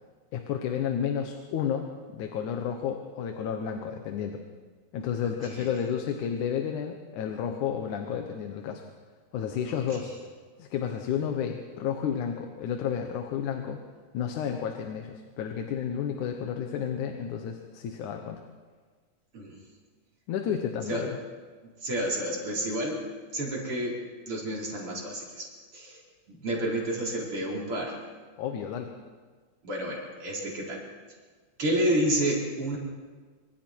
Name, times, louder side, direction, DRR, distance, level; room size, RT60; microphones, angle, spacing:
voice 1, 0.3-4.4 4.9-8.8 9.3-10.1 10.6-13.8 14.1-18.4 20.3-21.2 28.4-28.9, left 8 dB, 90° left, 4 dB, 2.7 m, -31 dB
voice 2, 5.2-5.7 9.7-9.8 19.3-19.6 20.9-21.1 21.8-23.0 23.3-24.0 24.3-25.4 25.7-26.0 26.3-28.0 29.6-30.8 31.6-32.8, right 1 dB, 45° right, -3 dB, 5.6 m, -30 dB
25.5 x 25.5 x 4.7 m, 1.5 s
omnidirectional pair, 3.4 m